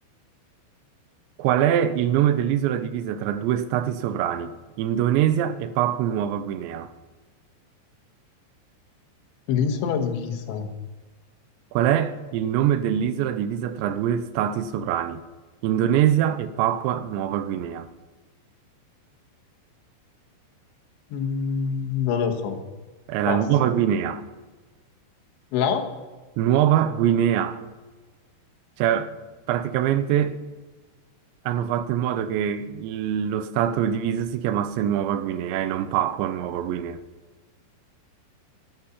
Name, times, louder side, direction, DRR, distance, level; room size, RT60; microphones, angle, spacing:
voice 1, 1.4-6.9 11.7-15.2 15.6-17.9 23.1-24.3 26.4-27.6 28.8-29.2 29.5-30.4 31.5-37.0, right 10 dB, 85° right, 3.0 m, -23 dB
voice 2, 9.5-10.7 21.1-22.6 23.3-23.4 25.5-25.9, left 7 dB, 80° left, 3.6 m, -25 dB
12.0 x 11.5 x 5.8 m
omnidirectional pair, 5.2 m